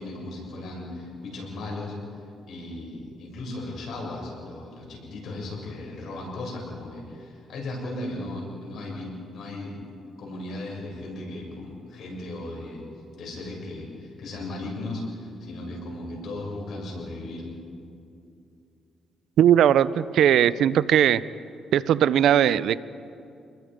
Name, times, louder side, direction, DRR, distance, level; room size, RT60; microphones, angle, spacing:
voice 1, 0.0-1.9 2.5-9.8 10.2-12.8 13.1-17.4, left 2 dB, 65° left, -1 dB, 7.1 m, -36 dB
voice 2, 19.4-21.2 21.7-22.8, right 10 dB, 75° right, 17 dB, 0.6 m, -19 dB
28.0 x 21.5 x 5.2 m, 2.5 s
cardioid pair, 90°, 0 cm